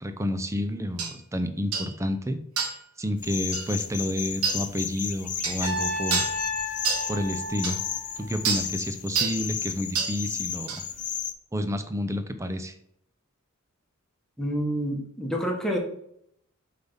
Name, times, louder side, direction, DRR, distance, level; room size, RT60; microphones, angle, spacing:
voice 1, 0.0-2.4 3.0-6.3 7.1-7.8 8.2-10.8 11.5-12.7, equal, 15° right, 8 dB, 0.6 m, -30 dB
sound 1, 1.0-1.1 1.7-1.9 2.6-2.8 3.5-3.7 4.4-4.6 5.4-5.6 6.1-6.4 6.8-7.1 7.6-7.7 8.4-8.7 9.1-9.4 9.9-10.2 10.7-10.8, right 5 dB, 85° right, 1.4 m, -27 dB
sound 2, 3.2-11.3, left 8 dB, 35° left, 0.6 m, -34 dB
Trumpet, 5.6-8.6, left 2 dB, 35° right, 3.0 m, -33 dB
voice 2, 14.4-15.8, equal, 5° left, 0 dB, 1.4 m, -28 dB
7.5 x 3.5 x 5.5 m, 0.70 s
head